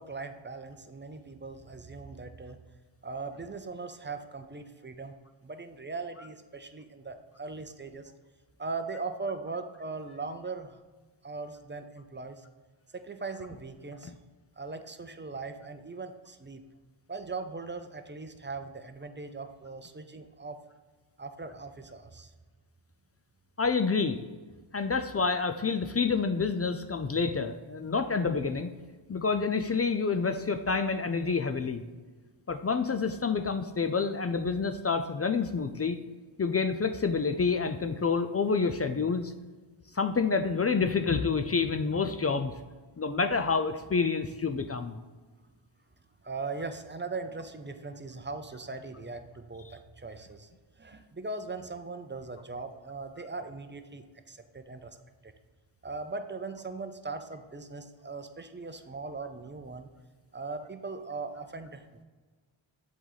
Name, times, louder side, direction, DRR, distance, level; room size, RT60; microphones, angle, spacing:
voice 1, 0.0-2.6 3.0-5.2 5.4-8.1 8.6-10.8 11.2-12.4 12.9-14.1 14.6-16.6 17.1-20.6 21.2-22.3 46.2-50.5 50.8-55.0 55.2-55.3 55.8-59.9 60.3-62.0, right 3 dB, 25° right, 8 dB, 0.6 m, -39 dB
voice 2, 23.6-24.2 24.7-28.7 29.1-31.8 32.5-36.0 36.4-39.3 39.9-42.5 43.0-45.0, left 5 dB, 30° left, 8 dB, 0.4 m, -28 dB
7.4 x 4.0 x 4.0 m, 1.4 s
cardioid pair, 60°, 49 cm